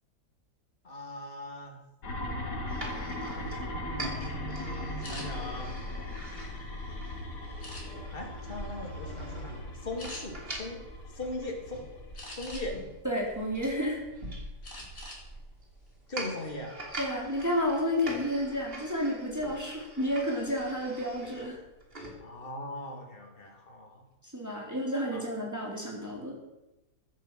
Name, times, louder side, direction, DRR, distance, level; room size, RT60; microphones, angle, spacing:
voice 1, 0.8-1.8 3.8-5.7 8.1-10.8 11.1-11.9 12.3-12.8 16.1-16.7 22.2-24.0 24.5-24.6 25.1-25.2, left 1 dB, 35° left, 2 dB, 2.8 m, -39 dB
sound 1, 2.0-12.7, left 1 dB, 85° left, 2.7 m, -39 dB
sound 2, 2.7-22.2, right 1 dB, 35° right, 3.1 m, -44 dB
sound 3, 5.0-5.3 5.9-6.9 7.6-8.2 8.7-8.9 9.3-9.5 10.0-10.2 12.1-12.9 13.4-14.1 14.6-15.2 15.6-15.8 16.2-16.5, left 1 dB, 50° left, 3.9 m, -45 dB
voice 2, 13.0-14.0 17.0-21.6 24.3-26.4, equal, 10° right, -2 dB, 3.6 m, -31 dB
14.5 x 9.3 x 7.6 m, 0.99 s
omnidirectional pair, 1.8 m